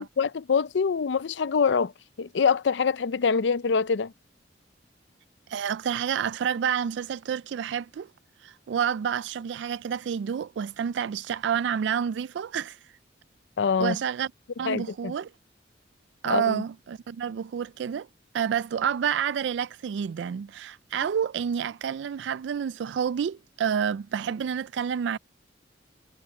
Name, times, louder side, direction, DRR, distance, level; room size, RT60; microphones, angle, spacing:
voice 1, 0.0-1.9 2.2-4.1 13.6-14.0 14.7-15.1 16.3-16.6, left 5 dB, 80° left, 0.5 m, -25 dB
voice 2, 5.5-8.1 8.4-12.8 13.8-14.3 14.6-15.3 16.2-18.1 18.3-25.2, right 8 dB, 75° right, 0.3 m, -29 dB
head